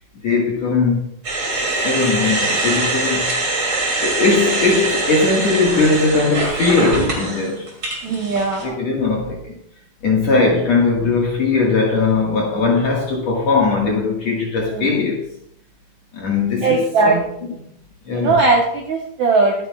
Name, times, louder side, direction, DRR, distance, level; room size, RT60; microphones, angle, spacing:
voice 1, 0.2-1.1 1.8-3.3 3.7-7.7 8.3-9.5 10.0-15.3 16.1-17.2 18.0-18.4, left 3 dB, 50° left, -2 dB, 2.3 m, -19 dB
sound 1, 1.2-8.6, right 2 dB, 30° right, 2.9 m, -23 dB
voice 2, 8.0-8.8 14.7-14.9 16.6-17.2 18.1-19.5, right 3 dB, 70° right, -1 dB, 1.8 m, -18 dB
22.5 x 9.5 x 2.4 m, 0.74 s
omnidirectional pair, 5.0 m